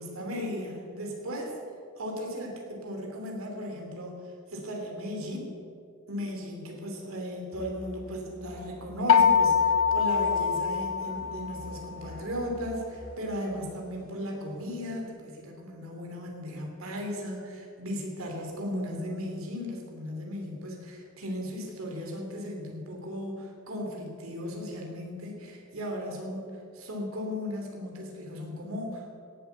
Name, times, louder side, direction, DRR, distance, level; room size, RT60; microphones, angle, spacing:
voice 1, 0.0-1.6 2.0-5.6 6.1-29.1, equal, 70° right, 0 dB, 2.9 m, -36 dB
Musical instrument, 7.5-13.2, equal, 35° right, 3.6 m, -47 dB
sound 1, 9.1-11.9, left 7 dB, 75° left, 0.5 m, -24 dB
17.0 x 8.1 x 6.9 m, 2.5 s
head